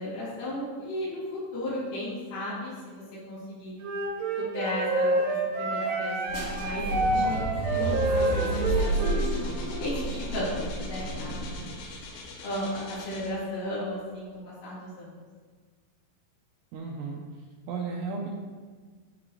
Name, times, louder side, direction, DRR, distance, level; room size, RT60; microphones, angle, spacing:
voice 1, 0.0-3.7 4.4-9.1 9.7-10.0 10.3-11.9 12.4-15.2, left 1 dB, 65° left, -9 dB, 3.9 m, -35 dB
Wind instrument woodwind instrument, 3.8-9.3, right 2 dB, 70° right, 3.1 m, -28 dB
sound 1, 6.3-11.8, right 1 dB, 50° left, 1.8 m, -30 dB
sound 2, 7.7-13.7 14.2-14.3, left 4 dB, 80° left, 2.1 m, -45 dB
voice 2, 16.7-17.2 17.7-18.3, right 4 dB, 85° right, -1 dB, 2.4 m, -34 dB
10.0 x 3.7 x 3.0 m, 1.5 s
omnidirectional pair, 5.4 m